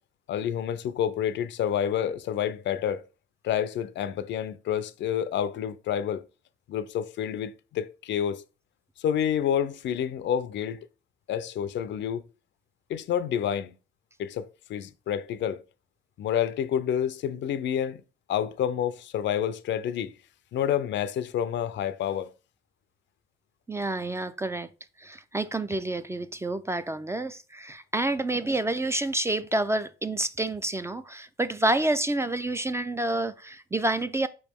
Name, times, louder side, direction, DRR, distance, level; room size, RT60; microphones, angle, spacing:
voice 1, 0.3-3.0 3.4-6.2 6.7-8.4 9.0-10.9 11.3-12.2 12.9-13.7 14.2-15.6 16.2-18.0 18.3-20.1 20.5-22.3, left 9 dB, 65° left, 0.4 m, -28 dB
voice 2, 23.7-24.7 25.0-34.3, right 2 dB, 15° right, 0.3 m, -28 dB
4.9 x 3.1 x 3.4 m
cardioid pair, 90°, 20 cm